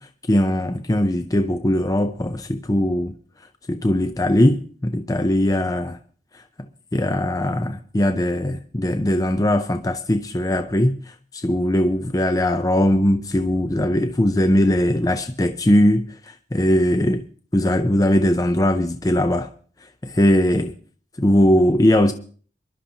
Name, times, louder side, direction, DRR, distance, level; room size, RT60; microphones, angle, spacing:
voice 1, 0.3-3.1 3.7-6.0 6.9-10.9 11.4-16.0 16.5-17.2 17.5-19.5 20.0-20.7 21.2-22.1, left 1 dB, 20° left, 0.6 m, -19 dB
25.5 x 12.0 x 2.8 m
head